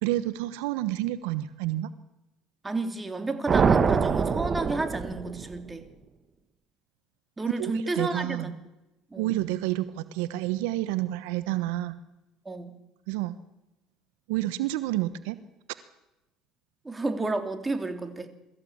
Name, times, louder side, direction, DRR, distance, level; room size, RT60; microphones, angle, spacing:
voice 1, 0.0-1.9 7.6-8.5 9.2-12.0 13.1-13.4 14.3-15.4, right 15 dB, 85° right, 14 dB, 1.1 m, -29 dB
voice 2, 2.6-5.8 7.4-8.5 9.1-9.4 12.4-12.8 16.8-18.3, right 2 dB, 15° right, 7 dB, 3.0 m, -31 dB
sound 1, 3.5-5.7, right 6 dB, 35° right, 1.6 m, -24 dB
23.0 x 14.5 x 8.7 m, 0.95 s
supercardioid pair, 90°, 0 cm